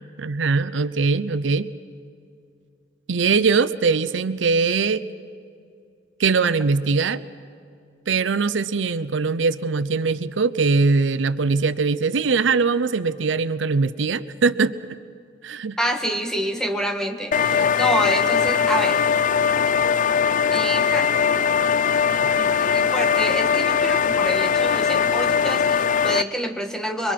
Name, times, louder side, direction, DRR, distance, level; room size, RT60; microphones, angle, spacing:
voice 1, 0.2-1.7 3.1-5.0 6.2-7.2 8.1-15.0 15.4-15.8 17.5-17.7, right 4 dB, 85° right, 15 dB, 0.6 m, -21 dB
voice 2, 15.8-19.0 20.5-21.2 22.3-27.1, equal, 5° left, 4 dB, 1.6 m, -27 dB
sound 1, 17.3-26.2, left 6 dB, 45° left, 0.5 m, -20 dB
27.0 x 23.0 x 6.0 m, 2.3 s
head